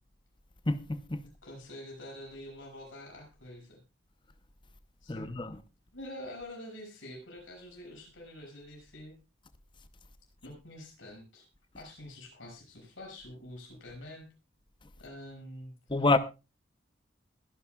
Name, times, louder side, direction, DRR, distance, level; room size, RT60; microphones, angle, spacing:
voice 1, 0.7-1.2 5.1-5.6 15.9-16.2, left 2 dB, 25° left, 0.8 m, -27 dB
voice 2, 1.4-3.8 5.0-5.3 5.9-9.2 10.4-11.5 11.7-14.2 15.0-15.7, left 1 dB, 80° left, 6.6 m, -46 dB
21.5 x 11.0 x 2.4 m
head